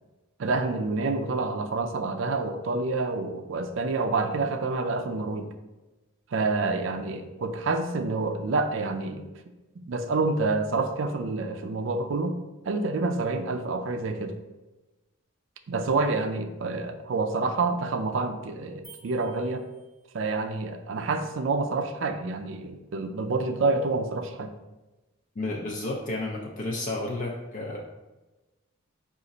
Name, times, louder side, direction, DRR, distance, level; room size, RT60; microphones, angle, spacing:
voice 1, 0.4-5.5 6.3-9.3 9.8-12.4 12.6-14.3 15.7-19.6 20.1-24.5, right 3 dB, 65° right, 7 dB, 0.4 m, -28 dB
sound 1, 18.8-20.4, right 4 dB, 20° right, 0.6 m, -53 dB
voice 2, 25.4-27.8, left 2 dB, 40° left, -2 dB, 0.4 m, -31 dB
4.9 x 2.5 x 4.0 m, 1.1 s
head